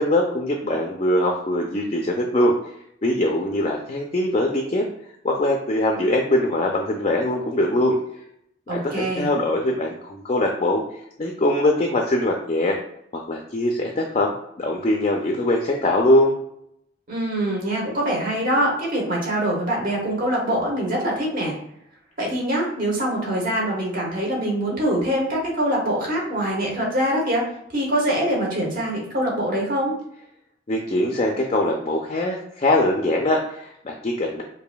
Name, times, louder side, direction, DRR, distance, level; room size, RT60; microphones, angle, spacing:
voice 1, 0.0-2.6 3.0-4.9 5.2-8.0 8.7-10.8 11.2-12.8 13.1-16.3 30.7-34.4, left 1 dB, 35° left, 1 dB, 0.4 m, -22 dB
voice 2, 8.7-9.3 17.1-21.5 22.2-27.4 27.7-29.9, right 1 dB, 45° right, -2 dB, 1.3 m, -24 dB
4.9 x 2.6 x 2.3 m, 0.76 s
head